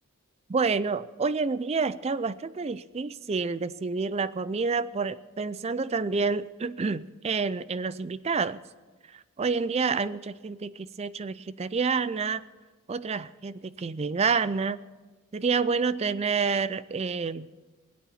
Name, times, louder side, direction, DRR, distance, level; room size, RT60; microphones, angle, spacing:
voice 1, 0.5-8.6 9.1-12.4 12.9-14.8 15.3-17.5, right 4 dB, 30° right, 17 dB, 0.4 m, -28 dB
21.5 x 8.5 x 7.2 m, 1.3 s
head